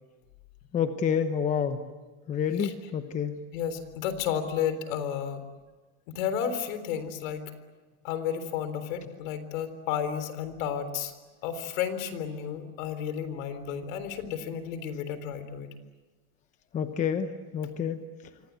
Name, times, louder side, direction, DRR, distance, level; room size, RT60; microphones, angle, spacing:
voice 1, 0.7-1.8 2.3-3.3 16.7-18.0, left 7 dB, 15° left, 8 dB, 1.0 m, -28 dB
voice 2, 3.5-5.4 6.1-7.4 8.0-11.1 11.4-15.7, left 8 dB, 60° left, 11 dB, 3.9 m, -32 dB
28.0 x 25.0 x 8.3 m, 1.3 s
supercardioid pair, 160°, 44 cm